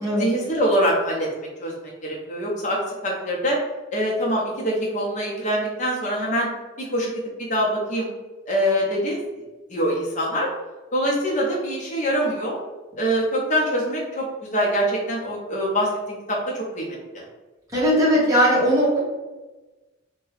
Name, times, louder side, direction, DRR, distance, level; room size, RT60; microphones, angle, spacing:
voice 1, 0.2-3.6 3.9-6.5 6.8-7.1 7.5-8.1 8.5-9.2 9.7-10.5 10.9-12.6 13.0-14.2 14.5-17.2, equal, 35° left, -2 dB, 0.7 m, -24 dB
voice 2, 17.7-19.0, equal, 15° right, -8 dB, 1.0 m, -18 dB
2.8 x 2.2 x 3.2 m, 1.2 s
head